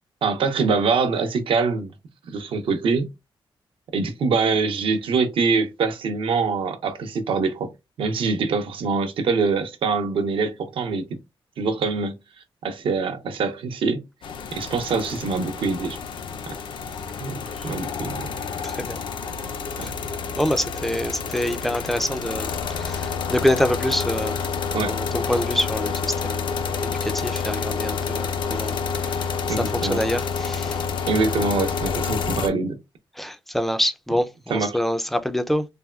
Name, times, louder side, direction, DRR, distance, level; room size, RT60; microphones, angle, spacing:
voice 1, 0.2-1.9 2.3-3.1 3.9-7.7 8.0-11.2 11.6-12.1 12.6-14.0 14.5-16.0 17.2-18.3 19.8-19.9 24.7-24.9 29.5-30.0 31.1-32.8 34.5-34.8, right 4 dB, 75° right, 0.6 m, -24 dB
sound 1, 14.2-32.5, left 5 dB, 65° left, 0.4 m, -28 dB
voice 2, 18.6-19.0 19.8-24.4 24.9-30.9 33.2-35.7, equal, ahead, 0.3 m, -26 dB
3.4 x 2.2 x 2.2 m
wide cardioid pair, 120°, 9 cm